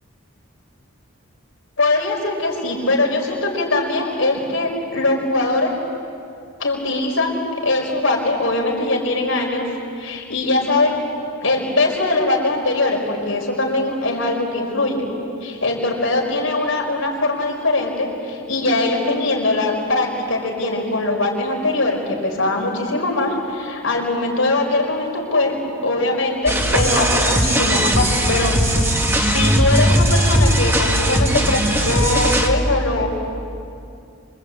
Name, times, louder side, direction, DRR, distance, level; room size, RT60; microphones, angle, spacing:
voice 1, 1.8-5.7 6.6-9.7 10.0-11.0 11.4-15.0 15.4-25.6 25.8-28.5 29.2-33.1, left 2 dB, 75° left, 0 dB, 5.2 m, -21 dB
sound 1, 26.5-32.5, right 1 dB, 10° right, 1.9 m, -18 dB
26.5 x 25.5 x 8.7 m, 2.5 s
head